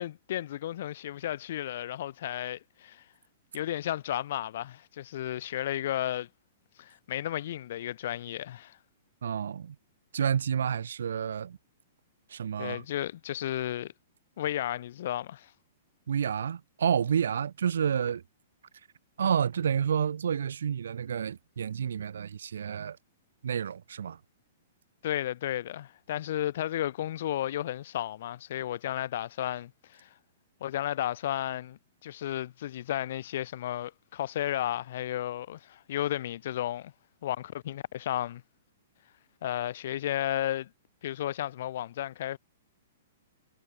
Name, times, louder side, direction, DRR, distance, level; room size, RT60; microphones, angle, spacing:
voice 1, 0.0-3.0 3.5-6.3 6.8-8.8 12.6-13.9 14.4-15.5 25.0-30.1 30.6-36.9 37.2-38.4 39.4-40.7 41.0-42.4, left 12 dB, 45° left, 7.6 m, -33 dB
voice 2, 9.2-9.8 10.1-11.6 12.3-12.8 16.1-18.2 19.2-23.0 23.4-24.2, right 8 dB, 85° right, 7.4 m, -29 dB
hypercardioid pair, 175°, 0 cm